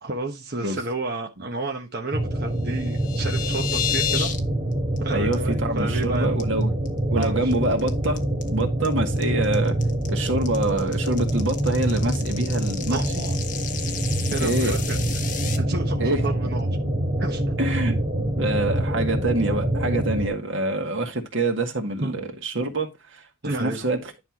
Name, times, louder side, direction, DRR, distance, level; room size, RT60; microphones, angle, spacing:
voice 1, 0.0-4.3 5.0-6.4 7.1-7.7 12.9-13.4 14.3-15.0 15.6-16.7 17.2-17.4 22.0-22.2 23.4-23.9, right 2 dB, 55° right, 1.2 m, -31 dB
sound 1, 2.1-20.3, right 1 dB, 30° right, 1.6 m, -25 dB
sound 2, 2.7-4.4 4.7-5.0 5.3-5.4 5.8-6.0 6.4-6.9 7.2-15.6, left 9 dB, 45° left, 1.3 m, -32 dB
voice 2, 5.1-6.7 7.1-8.2 8.5-9.8 10.1-13.0 14.4-14.8 16.0-16.2 17.6-18.0 18.4-23.2 23.6-24.0, right 2 dB, 90° right, 1.9 m, -26 dB
10.5 x 5.6 x 3.0 m
head